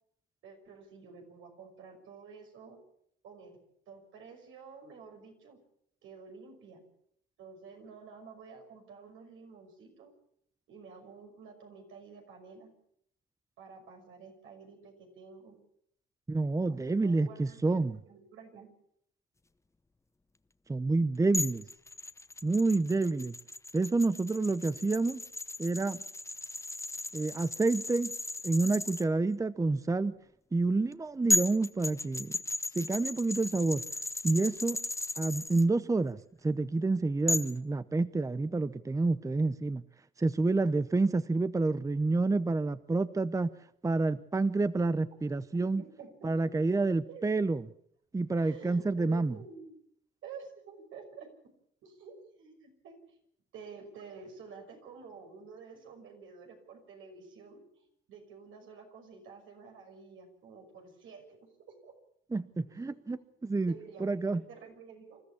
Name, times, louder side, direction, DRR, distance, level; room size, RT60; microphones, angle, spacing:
voice 1, 0.4-2.8 3.2-3.6 3.9-5.6 6.0-6.8 7.4-10.1 10.7-12.7 13.6-15.5 16.7-18.7 45.8-46.6 47.1-47.5 48.4-49.7 50.2-51.3 51.8-53.2 53.5-61.9 62.7-65.2, right 5 dB, 80° right, 3 dB, 5.9 m, -50 dB
voice 2, 16.3-18.0 20.7-21.6 22.4-23.4 23.7-25.2 25.6-26.0 27.1-28.1 28.4-30.1 30.5-32.3 32.7-33.8 34.2-34.8 35.2-39.8 40.2-43.5 43.8-45.8 46.2-47.6 48.1-49.4 62.3-63.7 64.0-64.4, right 3 dB, 15° right, 15 dB, 0.7 m, -28 dB
sound 1, 21.3-29.0 30.9-31.0 31.3-35.6 37.3-37.6, left 2 dB, 15° left, 0.9 m, -35 dB
27.0 x 13.5 x 7.1 m, 0.69 s
cardioid pair, 90°, 20 cm